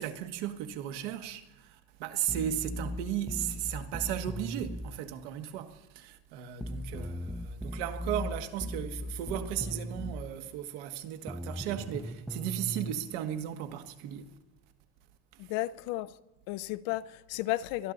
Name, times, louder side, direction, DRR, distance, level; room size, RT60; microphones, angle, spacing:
voice 1, 0.0-14.3 15.3-15.4, right 11 dB, 75° right, 1.6 m, -36 dB
sound 1, 2.3-4.9 6.6-10.2 11.3-12.9, equal, ahead, 0.7 m, -38 dB
voice 2, 15.4-16.1 16.5-17.9, left 16 dB, 65° left, 0.7 m, -33 dB
23.5 x 12.5 x 4.0 m
cardioid pair, 150°, 35 cm